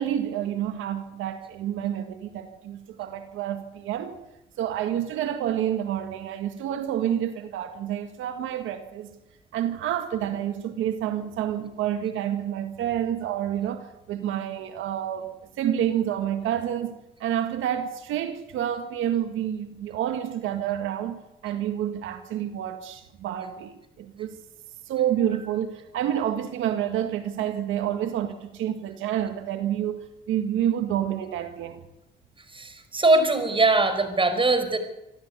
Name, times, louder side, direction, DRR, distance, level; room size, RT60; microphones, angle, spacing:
voice 1, 0.0-4.2 4.6-9.2 9.5-17.0 17.2-24.4 24.9-31.8, right 10 dB, 90° right, 1.8 m, -29 dB
voice 2, 32.5-34.8, right 2 dB, 25° right, 5.2 m, -21 dB
26.0 x 13.5 x 9.7 m
cardioid pair, 90°, 20 cm